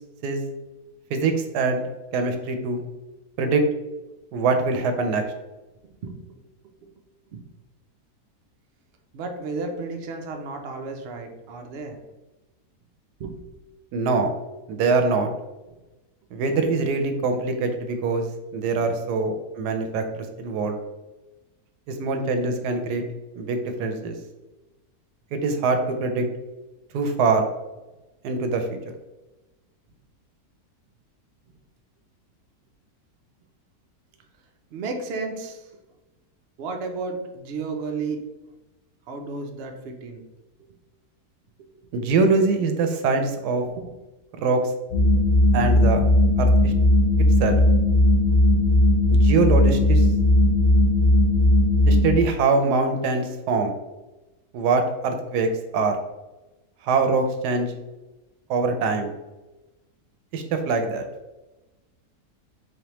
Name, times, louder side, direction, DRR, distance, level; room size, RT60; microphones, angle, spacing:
voice 1, 1.1-2.8 3.4-3.6 4.3-5.2 13.9-14.3 14.7-15.3 16.3-18.3 18.5-20.8 22.0-23.0 23.4-24.1 25.3-26.2 26.9-27.5 28.2-28.7 41.9-43.6 44.4-44.7 45.5-46.0 46.4-46.7 47.4-47.6 49.1-50.1 51.9-53.7 54.5-55.5 55.7-56.0 56.8-57.7 58.5-59.1 60.3-61.0, right 4 dB, 85° right, 6 dB, 1.2 m, -23 dB
voice 2, 5.8-6.2 7.3-7.4 9.1-12.0 13.2-13.4 34.7-35.7 36.6-38.2 39.1-40.2 41.7-42.2 43.7-43.9, right 3 dB, 65° right, 3 dB, 0.6 m, -33 dB
sound 1, 44.9-52.1, left 1 dB, 70° left, 1.2 m, -17 dB
4.0 x 3.3 x 2.9 m, 1.1 s
omnidirectional pair, 1.7 m